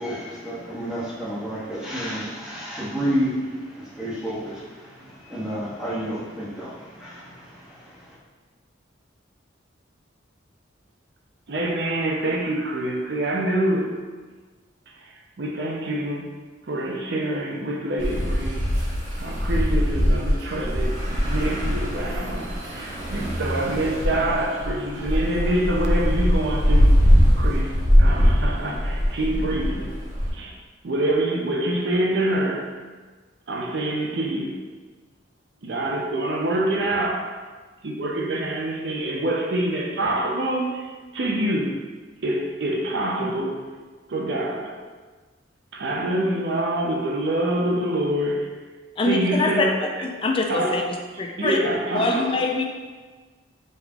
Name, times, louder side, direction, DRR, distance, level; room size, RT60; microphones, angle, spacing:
voice 1, 0.0-8.2, equal, 5° right, -9 dB, 1.0 m, -30 dB
voice 2, 11.5-14.0 15.4-16.3 16.7-18.7 19.2-26.9 27.4-29.9 30.3-30.6 30.8-32.8 33.5-34.6 35.6-37.3 37.8-41.8 42.2-43.6 44.1-44.8 45.7-48.5 49.0-50.1 50.5-50.9 51.4-52.5, right 1 dB, 60° right, 1 dB, 0.6 m, -26 dB
street sound, 18.0-30.3, equal, 35° right, 1.0 m, -21 dB
voice 3, 49.0-49.7 50.0-50.8 51.2-51.6 51.9-52.6, left 3 dB, 30° left, 2 dB, 0.3 m, -23 dB
5.3 x 3.1 x 2.4 m, 1.4 s
head